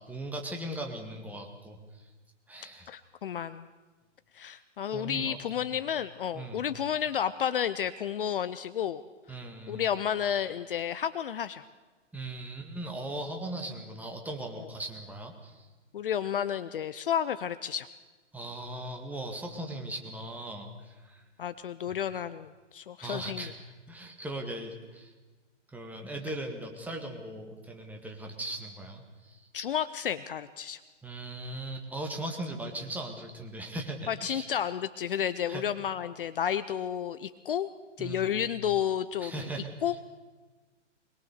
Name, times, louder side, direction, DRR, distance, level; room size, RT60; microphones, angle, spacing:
voice 1, 0.0-1.8 2.5-2.9 4.9-5.4 6.3-6.6 9.3-9.9 12.1-15.7 18.3-21.2 23.0-23.5 23.9-25.1 25.7-29.4 31.0-34.5 35.5-35.7 38.0-38.5 39.2-39.7, right 1 dB, 5° right, 2 dB, 2.0 m, -39 dB
voice 2, 2.9-3.6 4.3-9.0 9.7-11.6 14.6-14.7 15.9-17.9 21.4-23.5 29.5-30.8 34.1-37.7 38.0-40.0, left 9 dB, 45° left, 13 dB, 0.7 m, -31 dB
22.0 x 21.0 x 6.8 m, 1.3 s
figure-of-eight pair, 120°, 37 cm